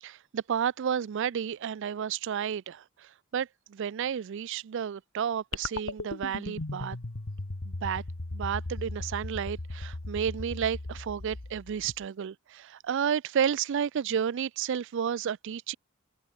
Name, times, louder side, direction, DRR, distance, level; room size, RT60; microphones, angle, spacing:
voice 1, 0.0-7.0 7.6-8.0 8.3-15.7, right 8 dB, 60° right, 0.4 m, -31 dB
sound 1, 5.5-12.0, left 2 dB, 80° left, 1.5 m, -37 dB
open air
head